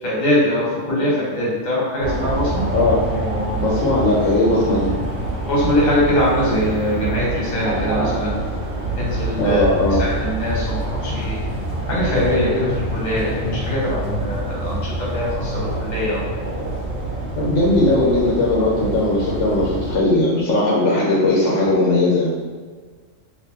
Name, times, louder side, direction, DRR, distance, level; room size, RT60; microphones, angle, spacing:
voice 1, 0.0-2.7 5.5-8.3 9.0-11.4 11.9-16.2, left 1 dB, 35° left, -5 dB, 1.0 m, -22 dB
sound 1, 2.0-20.0, right 1 dB, 60° right, 0.9 m, -26 dB
voice 2, 3.6-4.9 9.4-10.0 17.4-22.3, left 2 dB, 70° left, -5 dB, 1.0 m, -18 dB
2.9 x 2.6 x 3.5 m, 1.5 s
omnidirectional pair, 1.4 m